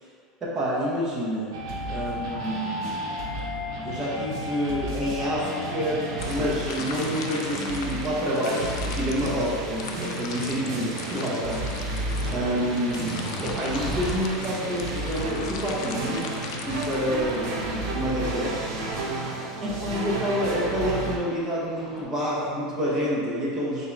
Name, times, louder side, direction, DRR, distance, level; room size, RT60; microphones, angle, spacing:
voice 1, 0.4-1.6 1.9-3.1 3.8-11.6 12.3-18.7 19.6-23.9, equal, 20° right, -6 dB, 1.0 m, -28 dB
sound 1, 1.5-21.2, right 1 dB, 90° right, 0.8 m, -32 dB
sound 2, 6.2-17.5, left 5 dB, 90° left, 0.4 m, -40 dB
sound 3, 11.2-14.4 15.7-15.8 16.8-18.7 19.8-20.3 21.3-21.4 21.7-22.0, equal, 5° left, 0.7 m, -39 dB
3.7 x 2.7 x 4.5 m, 2.3 s
supercardioid pair, 155°, 3 cm